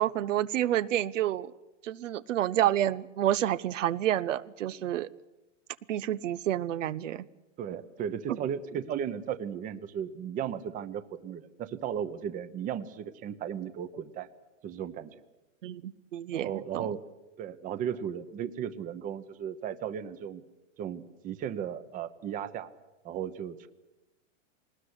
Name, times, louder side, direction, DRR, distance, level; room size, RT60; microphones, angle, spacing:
voice 1, 0.0-1.5 1.8-5.1 5.9-7.3 15.6-16.9, right 12 dB, 75° right, 17 dB, 0.9 m, -29 dB
voice 2, 7.6-14.3 14.6-15.2 16.3-17.0 17.4-20.4 20.8-22.7 23.0-23.7, right 9 dB, 20° right, 13 dB, 1.0 m, -35 dB
20.0 x 20.0 x 9.8 m, 1.0 s
hypercardioid pair, 150°, 38 cm